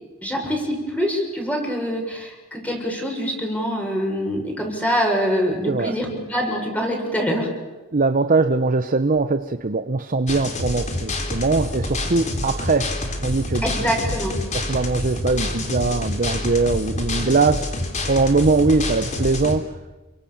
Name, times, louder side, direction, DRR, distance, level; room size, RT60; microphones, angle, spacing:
voice 1, 0.2-7.5 13.6-14.4, equal, 5° left, 1 dB, 6.6 m, -24 dB
voice 2, 7.9-13.7 14.5-17.7 18.1-19.8, right 3 dB, 40° right, 10 dB, 0.9 m, -21 dB
sound 1, 10.3-19.6, left 1 dB, 35° left, 3.5 m, -27 dB
29.5 x 23.5 x 7.2 m, 1.2 s
head